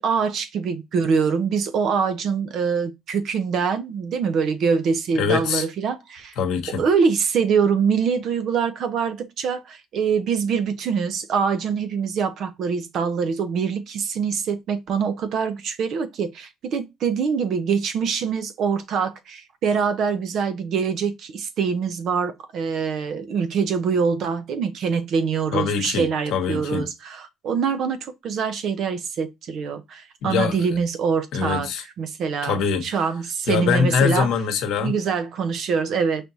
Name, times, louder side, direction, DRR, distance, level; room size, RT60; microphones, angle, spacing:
voice 1, 0.0-6.4 6.8-31.7 32.0-34.3 34.8-36.2, right 6 dB, 65° right, 0.6 m, -24 dB
voice 2, 5.2-5.6 6.4-6.8 25.5-26.1 26.3-26.8 30.2-30.6 31.3-31.8 32.4-32.8 33.5-34.9, left 6 dB, 75° left, 0.9 m, -23 dB
4.6 x 3.4 x 2.6 m
supercardioid pair, 80°, 0 cm